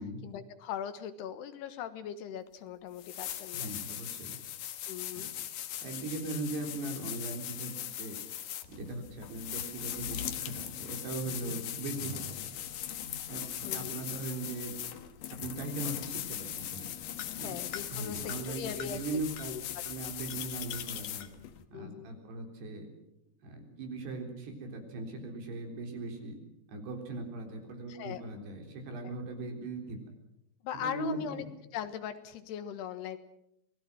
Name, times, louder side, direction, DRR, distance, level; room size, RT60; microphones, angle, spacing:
voice 1, 0.2-3.7 4.9-5.3 11.4-11.6 13.6-14.0 17.4-19.2 19.5-19.8 21.7-22.1 27.9-28.2 29.0-29.2 30.6-31.4 31.7-33.2, left 9 dB, 85° left, 10 dB, 3.4 m, -40 dB
sound 1, 2.5-2.6 3.0-21.6, left 11 dB, 65° left, 2.7 m, -40 dB
voice 2, 3.5-4.4 5.2-5.3 5.8-8.2 8.7-12.5 13.3-13.5 13.7-14.7 15.3-16.9 17.4-17.5 17.9-19.5 19.9-21.3 21.7-22.9 23.4-26.4 26.7-30.0 30.7-31.5, right 3 dB, 80° right, 3 dB, 5.9 m, -39 dB
sound 2, 11.2-12.4 12.6-13.7, right 1 dB, 20° left, 5.1 m, -50 dB
27.0 x 20.5 x 6.2 m, 0.79 s
omnidirectional pair, 4.7 m